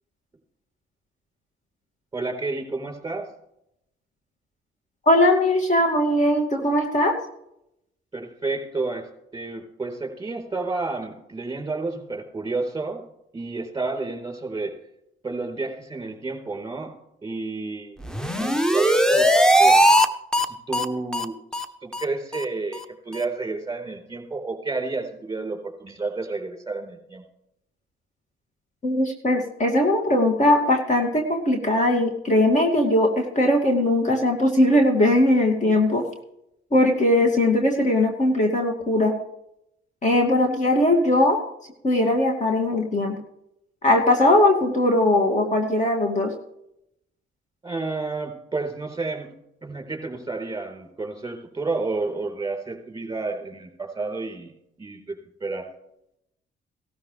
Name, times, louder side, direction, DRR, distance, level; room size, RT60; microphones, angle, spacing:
voice 1, 2.1-3.3 8.1-9.1 9.3-13.1 13.3-14.7 15.2-16.9 17.2-18.0 18.3-19.8 20.4-27.2 47.6-49.3 49.6-54.5 54.8-55.7, right 3 dB, 15° right, 3 dB, 4.2 m, -31 dB
voice 2, 5.1-7.2 28.8-36.1 36.7-39.1 40.0-41.4 41.8-43.2 43.8-46.3, left 1 dB, 35° left, 3 dB, 2.4 m, -20 dB
sound 1, 18.0-20.1 20.3-20.5 20.7-20.9 21.1-21.3 21.5-21.7 21.9-22.1 22.3-22.4 22.7-22.8 23.1-23.2, equal, 5° left, 0.9 m, -18 dB
17.0 x 13.0 x 3.4 m, 0.80 s
cardioid pair, 90°, 20 cm